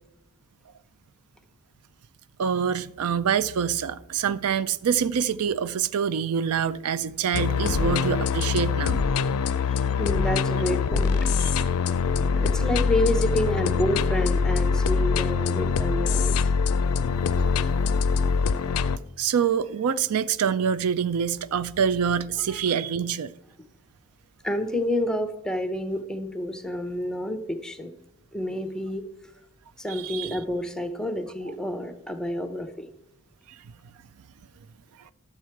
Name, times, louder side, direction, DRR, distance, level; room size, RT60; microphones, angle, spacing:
voice 1, 2.4-9.0 11.4-11.7 19.2-23.3 29.9-30.4, right 7 dB, 85° right, 0.4 m, -26 dB
sound 1, 7.3-19.0, left 5 dB, 75° left, 0.4 m, -24 dB
voice 2, 9.7-11.4 12.4-16.4 22.5-22.6 24.4-27.9 28.3-29.0 29.8-32.9, left 1 dB, 5° left, 0.7 m, -29 dB
11.5 x 7.5 x 4.6 m
head